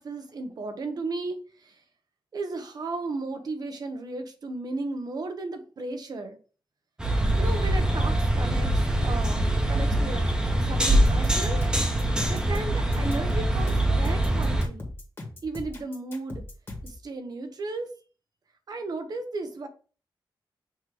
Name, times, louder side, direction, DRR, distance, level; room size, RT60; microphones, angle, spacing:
voice 1, 0.0-1.8 2.3-6.4 7.4-10.3 10.6-11.6 12.3-14.9 15.4-16.4 16.8-17.9 18.7-19.7, right 3 dB, 55° right, 7 dB, 1.0 m, -35 dB
sound 1, 7.0-14.7, right 1 dB, 10° right, 1.1 m, -24 dB
sound 2, 11.0-17.0, left 2 dB, 30° left, 1.7 m, -39 dB
6.5 x 3.1 x 4.8 m, 0.38 s
wide cardioid pair, 160°, 8 cm